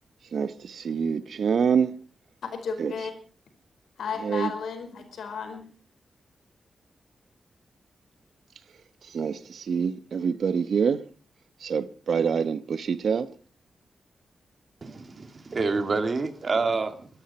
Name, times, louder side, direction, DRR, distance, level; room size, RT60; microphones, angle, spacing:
voice 1, 0.8-1.9 2.8-2.9 4.3-4.5 9.1-9.3 9.7-11.0 11.7-12.6 12.9-13.2, right 6 dB, 70° right, 1.1 m, -25 dB
voice 2, 2.4-3.1 4.0-5.6, left 6 dB, 85° left, 4.9 m, -33 dB
voice 3, 14.8-17.1, right 4 dB, 45° right, 2.5 m, -27 dB
23.0 x 13.0 x 4.3 m
cardioid pair, 80°, 0 cm